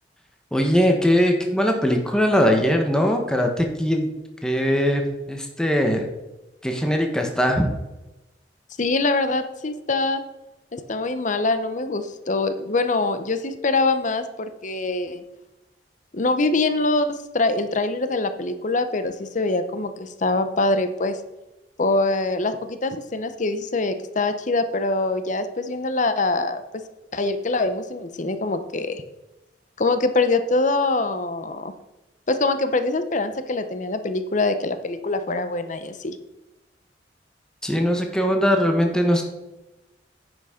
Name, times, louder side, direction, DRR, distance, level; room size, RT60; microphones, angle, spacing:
voice 1, 0.5-4.1 4.4-6.1 6.6-7.7 37.6-39.2, equal, 5° left, 3 dB, 1.2 m, -20 dB
voice 2, 8.8-10.2 10.7-15.2 16.1-21.2 21.8-26.6 27.1-29.0 29.8-31.7 32.3-36.2, left 3 dB, 45° left, 10 dB, 0.8 m, -24 dB
10.0 x 6.1 x 5.0 m, 1.0 s
head